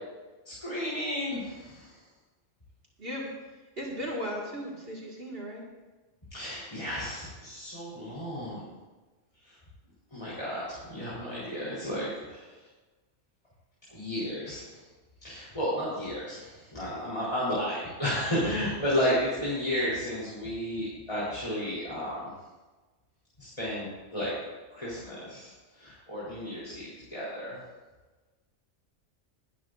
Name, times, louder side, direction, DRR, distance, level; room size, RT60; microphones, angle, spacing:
voice 1, 0.4-2.0 6.3-8.7 9.4-9.6 10.1-12.7 13.9-14.8 15.2-22.3 23.4-24.3 24.7-27.6, equal, 25° left, -10 dB, 4.2 m, -33 dB
voice 2, 3.0-3.3 3.8-5.7 8.0-8.5, equal, 50° right, -3 dB, 2.3 m, -37 dB
22.0 x 11.5 x 2.7 m, 1.2 s
omnidirectional pair, 1.2 m